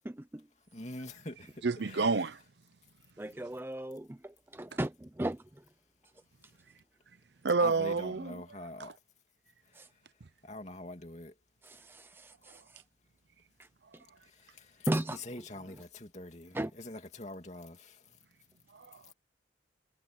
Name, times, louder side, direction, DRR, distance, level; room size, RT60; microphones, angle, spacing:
voice 1, 0.0-0.4 3.2-5.4 9.7-9.9 11.6-12.8 14.9-15.8 16.5-16.7, right 1 dB, 10° right, 0.4 m, -37 dB
voice 2, 0.7-1.5 7.6-8.9 10.4-11.3 15.3-17.9, left 1 dB, 40° left, 2.7 m, -44 dB
voice 3, 1.6-2.4 7.4-9.0 12.5-12.6 18.7-19.1, right 4 dB, 75° right, 0.7 m, -30 dB
head